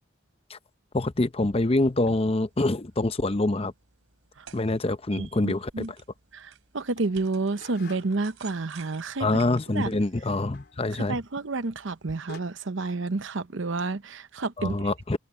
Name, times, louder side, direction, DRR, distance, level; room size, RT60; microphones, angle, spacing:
voice 1, 0.9-3.7 4.5-5.9 9.2-11.2 14.6-15.2, left 2 dB, 30° left, 0.7 m, -25 dB
sound 1, 1.8-12.2, right 7 dB, 85° right, 3.0 m, -54 dB
voice 2, 5.2-5.9 6.3-9.4 9.7-9.9 11.1-15.2, right 3 dB, 65° right, 0.8 m, -30 dB
sound 2, 7.0-8.4 10.5-10.8 11.8-11.9 12.3-12.4, left 3 dB, 50° left, 4.1 m, -47 dB
head